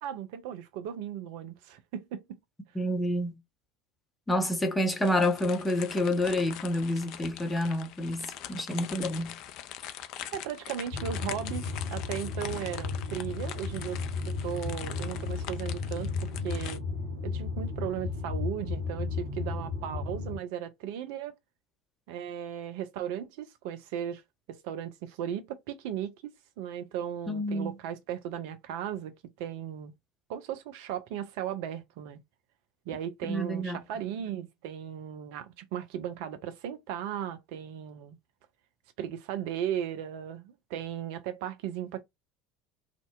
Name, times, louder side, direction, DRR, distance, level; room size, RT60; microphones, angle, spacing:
voice 1, 0.0-2.4 10.3-14.0 14.3-16.8 17.2-21.3 22.1-24.2 24.5-26.3 26.6-29.9 30.3-32.2 32.9-38.2 39.0-42.0, right 9 dB, 60° right, 0.4 m, -36 dB
voice 2, 2.7-3.4 4.3-9.4 27.3-27.7 33.3-33.8, left 1 dB, 10° left, 0.7 m, -28 dB
sound 1, 5.0-16.8, left 11 dB, 50° left, 0.3 m, -43 dB
sound 2, 10.9-20.4, left 4 dB, 75° right, 1.1 m, -34 dB
2.7 x 2.1 x 2.3 m
figure-of-eight pair, 70°, 0 cm